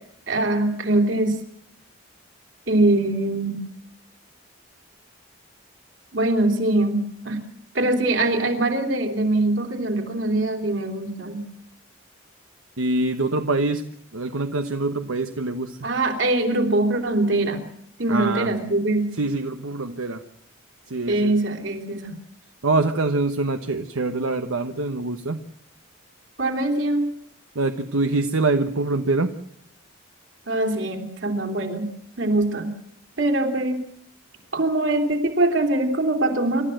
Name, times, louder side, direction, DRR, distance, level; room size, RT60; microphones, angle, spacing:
voice 1, 0.3-1.4 2.7-3.6 6.1-7.4 7.7-11.4 15.8-17.6 18.0-19.1 21.1-22.2 26.4-27.1 30.5-31.9 32.2-32.7 33.2-33.8 34.5-36.6, right 2 dB, 60° right, 4 dB, 3.4 m, -22 dB
voice 2, 12.8-13.8 14.1-15.8 18.1-18.5 19.2-20.2 20.9-21.4 22.6-25.4 27.5-29.3, right 2 dB, 80° right, 7 dB, 1.0 m, -24 dB
28.0 x 13.5 x 7.8 m, 0.71 s
head